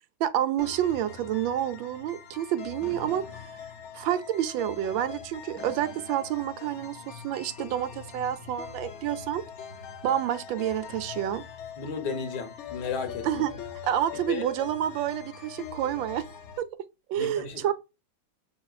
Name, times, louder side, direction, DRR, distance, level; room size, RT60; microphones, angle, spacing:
voice 1, 0.2-3.2 3.9-9.4 10.0-11.4 13.2-13.5 13.9-16.2 16.6-16.7 17.1-17.7, right 11 dB, 85° right, 1.4 m, -29 dB
sound 1, 0.6-16.6, left 7 dB, 85° left, 0.6 m, -42 dB
Fireworks, 2.8-4.1 5.5-7.1, right 4 dB, 60° right, 1.0 m, -49 dB
voice 2, 11.8-13.4 14.1-14.5 17.2-17.7, left 5 dB, 65° left, 1.6 m, -34 dB
5.7 x 3.6 x 2.3 m
omnidirectional pair, 2.1 m